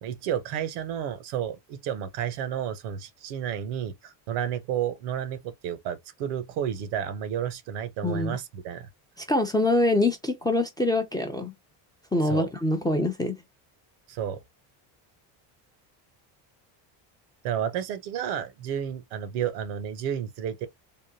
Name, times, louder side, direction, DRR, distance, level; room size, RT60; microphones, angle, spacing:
voice 1, 0.0-8.9 12.3-12.5 14.1-14.4 17.4-20.7, right 9 dB, 90° right, 0.8 m, -31 dB
voice 2, 8.0-8.4 9.2-11.5 12.1-13.4, left 2 dB, 10° left, 0.3 m, -24 dB
3.5 x 2.2 x 2.6 m
cardioid pair, 110°, 48 cm